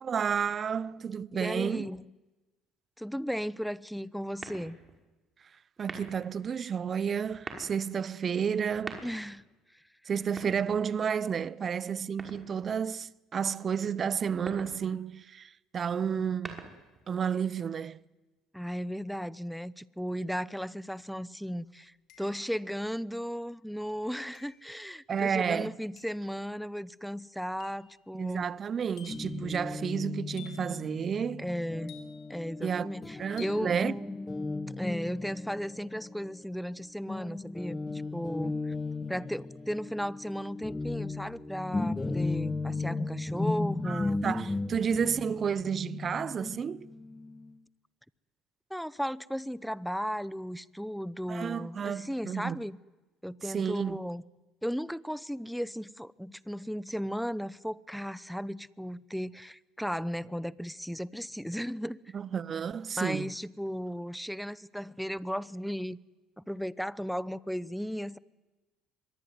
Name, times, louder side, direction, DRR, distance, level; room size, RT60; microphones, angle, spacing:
voice 1, 0.0-1.9 5.8-9.0 10.1-16.6 17.1-18.0 25.1-25.8 28.1-31.5 32.6-32.9 33.2-34.0 43.8-46.9 51.3-52.6 53.4-54.0 62.1-63.3, right 7 dB, 45° right, 0.8 m, -31 dB
voice 2, 1.3-2.0 3.0-4.8 9.0-9.4 18.5-28.4 31.4-32.0 32.3-33.7 34.8-38.7 39.1-44.2 48.7-52.8 53.2-54.2 54.6-62.0 63.0-66.0 66.4-68.2, equal, ahead, 0.9 m, -35 dB
sound 1, 4.4-5.0 5.8-6.3 7.2-7.8 8.6-9.4 10.2-11.1 12.2-12.8 14.2-14.8 16.1-17.0, right 3 dB, 30° right, 5.5 m, -44 dB
sound 2, 20.9-21.0 22.1-22.6 24.3-24.7 26.0-26.3 27.6-27.9 29.0-29.4 30.4-30.8 31.9-32.4 33.4-33.7, left 9 dB, 70° left, 5.0 m, -52 dB
Guitar, 29.1-36.8 37.1-47.5, left 3 dB, 20° left, 1.6 m, -36 dB
24.5 x 22.5 x 9.7 m
supercardioid pair, 70°, 0 cm